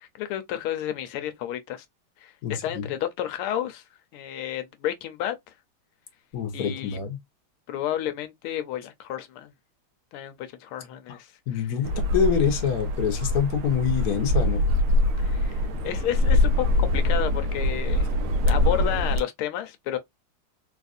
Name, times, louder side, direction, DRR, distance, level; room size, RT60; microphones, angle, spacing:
voice 1, 0.0-1.8 2.2-3.8 4.1-5.3 6.5-7.0 7.7-9.5 10.1-11.7 15.2-18.1 18.4-20.0, left 11 dB, 90° left, 1.5 m, -31 dB
voice 2, 2.4-2.9 6.3-7.2 11.1-11.2 11.5-14.6, left 7 dB, 55° left, 1.2 m, -26 dB
sound 1, 11.8-19.2, left 1 dB, 80° right, 1.5 m, -23 dB
4.1 x 2.4 x 2.5 m
omnidirectional pair, 2.4 m